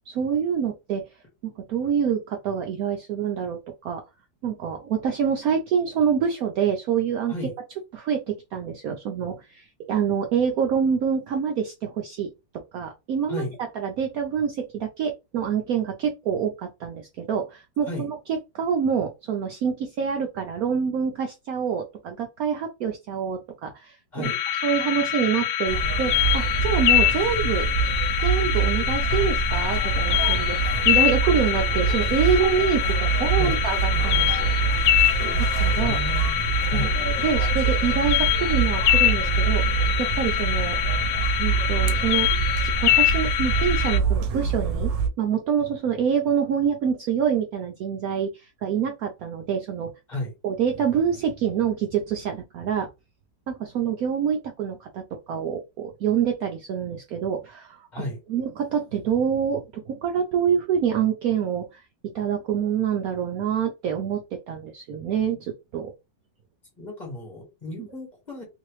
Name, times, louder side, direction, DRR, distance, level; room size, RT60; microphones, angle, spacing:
voice 1, 0.1-1.0 1.4-4.0 4.4-7.5 7.9-12.3 12.7-13.4 13.8-24.3 24.6-27.7 28.2-34.5 35.4-36.0 36.6-40.8 41.4-42.3 42.6-44.9 45.2-49.9 50.4-52.9 53.5-58.0 58.3-61.8 62.1-65.9 67.8-67.9, right 7 dB, 70° right, 3 dB, 0.9 m, -26 dB
sound 1, 24.2-44.0, left 12 dB, 80° left, 1.2 m, -24 dB
sound 2, 25.7-45.1, right 6 dB, 85° right, 1.3 m, -25 dB
voice 2, 33.0-33.6 35.8-37.0 50.1-50.3 57.9-58.2 66.8-68.4, left 1 dB, 25° left, -1 dB, 1.6 m, -34 dB
3.1 x 2.9 x 3.0 m, 0.25 s
omnidirectional pair, 1.9 m